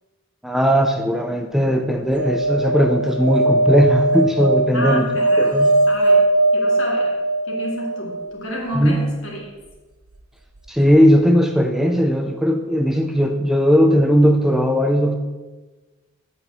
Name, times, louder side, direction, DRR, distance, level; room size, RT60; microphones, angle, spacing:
voice 1, 0.4-5.1 5.4-5.8 8.7-9.0 10.7-15.2, equal, ahead, 4 dB, 0.4 m, -17 dB
sound 1, 2.1-8.3 10.6-10.7 10.8-10.9, right 2 dB, 90° right, 1.0 m, -19 dB
voice 2, 4.7-7.2 7.5-9.4, equal, 60° left, -2 dB, 2.3 m, -30 dB
8.8 x 4.7 x 6.6 m, 1.3 s
head